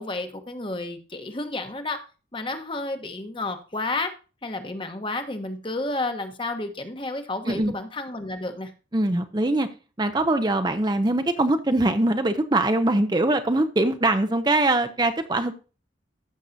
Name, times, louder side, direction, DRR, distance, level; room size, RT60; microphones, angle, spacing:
voice 1, 0.0-2.0 2.3-4.1 4.4-8.7, left 2 dB, 30° left, 7 dB, 1.1 m, -31 dB
voice 2, 8.9-9.7 10.0-15.6, right 2 dB, 25° right, 8 dB, 0.6 m, -22 dB
14.5 x 6.4 x 2.7 m, 0.34 s
head